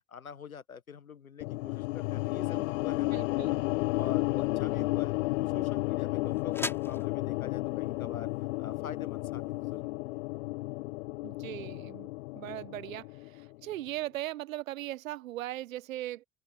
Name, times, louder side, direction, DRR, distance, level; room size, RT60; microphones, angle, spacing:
voice 1, 0.1-3.6 4.0-5.1 5.4-8.3 8.6-10.2, left 6 dB, 85° left, 1.5 m, -45 dB
sound 1, 1.4-13.7, left 21 dB, 65° left, 1.3 m, -32 dB
voice 2, 2.9-3.6 4.8-4.9 11.2-12.1 12.3-16.2, right 15 dB, 70° right, 1.1 m, -39 dB
sound 2, 3.9-9.8, left 1 dB, 5° left, 3.2 m, -45 dB
figure-of-eight pair, 60°, 41 cm